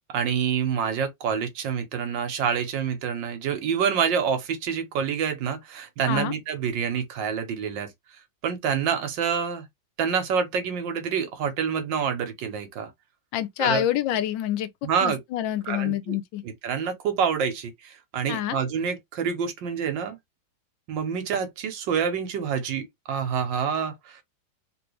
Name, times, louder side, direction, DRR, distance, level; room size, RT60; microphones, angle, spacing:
voice 1, 0.1-7.9 8.4-9.7 10.0-12.9 13.6-13.8 14.8-15.2 15.7-16.2 16.4-20.2 20.9-24.2, right 7 dB, 85° right, 1.6 m, -27 dB
voice 2, 13.3-16.4 18.3-18.6, left 12 dB, 85° left, 1.3 m, -27 dB
3.2 x 3.1 x 3.2 m
omnidirectional pair, 2.0 m